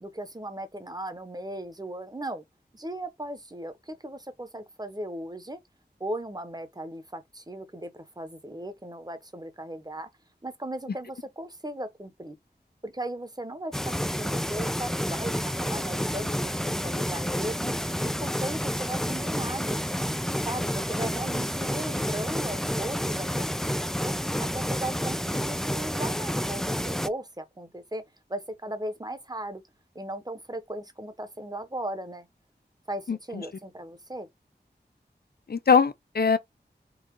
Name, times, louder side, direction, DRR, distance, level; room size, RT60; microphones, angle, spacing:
voice 1, 0.0-2.4 2.7-5.6 6.0-10.1 10.4-12.4 12.8-17.7 18.0-20.0 20.4-24.1 24.4-28.0 28.3-29.6 29.9-32.3 32.9-34.3, right 1 dB, 20° right, 1.0 m, -37 dB
sound 1, 13.7-27.1, equal, ahead, 0.3 m, -29 dB
voice 2, 33.1-33.4 35.5-36.4, left 6 dB, 60° left, 0.5 m, -22 dB
4.0 x 2.4 x 4.6 m
wide cardioid pair, 70°, 18 cm